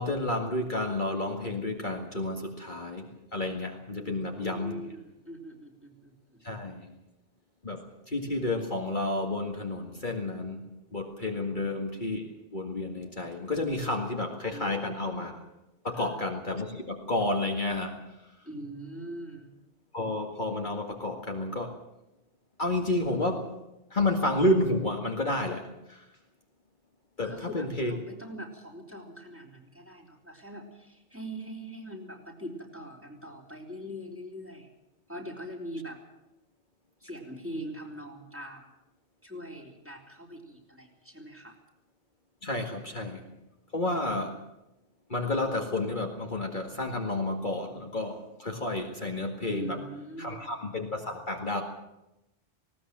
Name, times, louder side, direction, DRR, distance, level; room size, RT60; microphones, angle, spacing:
voice 1, 0.0-4.8 6.4-6.9 7.6-10.6 10.9-15.4 15.8-18.0 19.9-21.8 22.6-23.5 23.9-26.1 27.2-27.9 42.4-43.3 43.7-44.4 45.1-49.8 50.2-51.6, left 2 dB, 40° left, 2 dB, 2.1 m, -31 dB
voice 2, 4.0-6.4 14.5-14.9 16.0-16.1 18.5-19.5 27.2-34.7 35.1-36.0 37.0-38.6 39.2-41.6 49.5-50.5, equal, 10° right, 0 dB, 3.9 m, -42 dB
19.5 x 18.0 x 7.6 m, 0.91 s
omnidirectional pair, 1.2 m